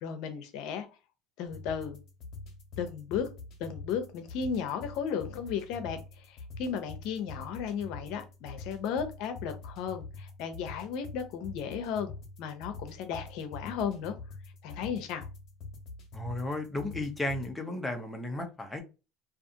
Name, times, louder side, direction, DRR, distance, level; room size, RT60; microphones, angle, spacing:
voice 1, 0.0-0.9 1.4-2.0 2.8-3.3 3.6-6.0 6.3-12.1 12.4-14.1 14.6-15.3, left 7 dB, 70° left, 0.6 m, -35 dB
sound 1, 1.5-17.5, left 3 dB, 50° left, 1.1 m, -45 dB
voice 2, 16.1-18.8, left 2 dB, 10° left, 0.7 m, -34 dB
2.5 x 2.4 x 2.7 m
supercardioid pair, 115°, 0 cm